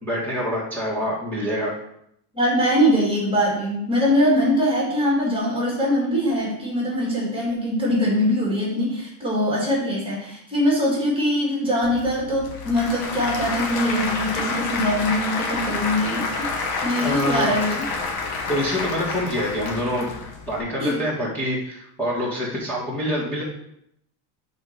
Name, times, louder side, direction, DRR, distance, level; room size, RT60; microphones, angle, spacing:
voice 1, 0.0-1.7 17.0-17.6 18.5-20.1 20.5-23.4, equal, 5° left, -8 dB, 1.9 m, -26 dB
voice 2, 2.3-16.5 16.8-17.8 20.8-21.0, equal, 10° right, -4 dB, 2.0 m, -22 dB
Applause / Crowd, 11.8-20.6, left 4 dB, 55° left, 1.2 m, -29 dB
6.2 x 4.2 x 5.0 m, 0.74 s
cardioid pair, 140°, 45 cm